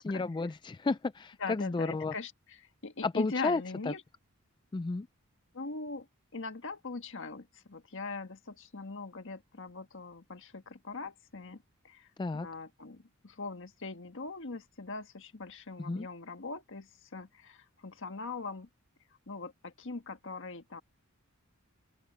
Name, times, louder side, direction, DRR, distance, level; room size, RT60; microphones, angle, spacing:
voice 1, 0.0-2.1 3.0-3.9 4.7-5.1 12.2-12.5 15.8-16.1, left 3 dB, 20° left, 0.3 m, -32 dB
voice 2, 1.4-2.6 2.8-4.0 5.5-6.1 6.3-12.1 12.3-18.7 19.3-20.8, left 3 dB, 60° left, 1.6 m, -41 dB
open air
head